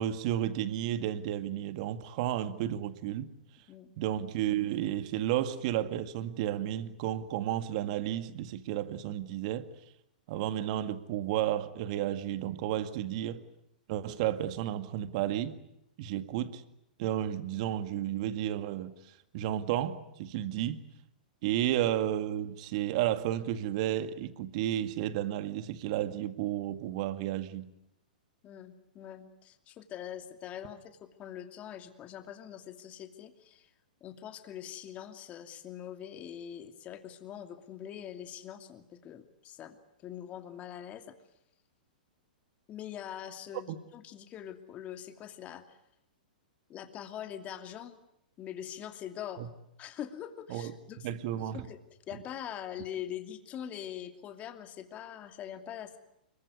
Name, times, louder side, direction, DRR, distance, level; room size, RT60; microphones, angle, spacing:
voice 1, 0.0-3.3 4.0-9.7 10.3-13.4 13.9-15.6 16.0-16.6 17.0-18.9 19.3-20.8 21.4-27.7 49.4-49.5 50.5-50.7 51.0-51.7, right 12 dB, 50° right, 2.0 m, -32 dB
voice 2, 28.4-33.7 34.0-39.8 40.0-41.1 42.7-45.8 46.7-48.0 48.4-49.5 49.8-51.1 51.5-56.0, left 10 dB, 30° left, 2.7 m, -43 dB
25.5 x 23.0 x 9.5 m
hypercardioid pair, 120°, 5 cm